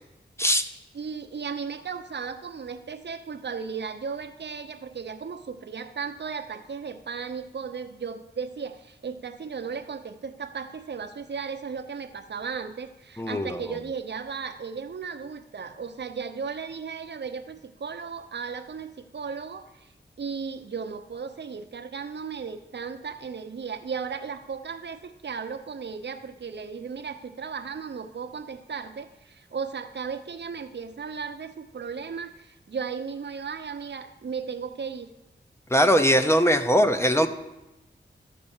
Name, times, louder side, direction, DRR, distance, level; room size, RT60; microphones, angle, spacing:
voice 1, 0.9-19.9 20.2-35.1, right 6 dB, 65° right, 9 dB, 0.7 m, -35 dB
voice 2, 13.2-13.6 35.7-37.3, equal, 15° left, 7 dB, 0.7 m, -20 dB
13.0 x 5.4 x 7.2 m, 0.94 s
wide cardioid pair, 100°, 19 cm